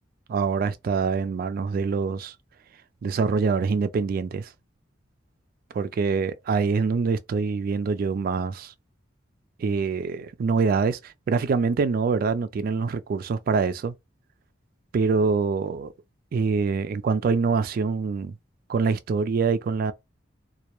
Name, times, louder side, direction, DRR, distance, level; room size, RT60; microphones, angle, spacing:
voice 1, 0.3-2.3 3.0-4.5 5.8-8.7 9.6-13.9 14.9-15.9 16.3-18.3 18.7-19.9, right 5 dB, 50° right, 0.3 m, -25 dB
2.2 x 2.0 x 2.9 m
head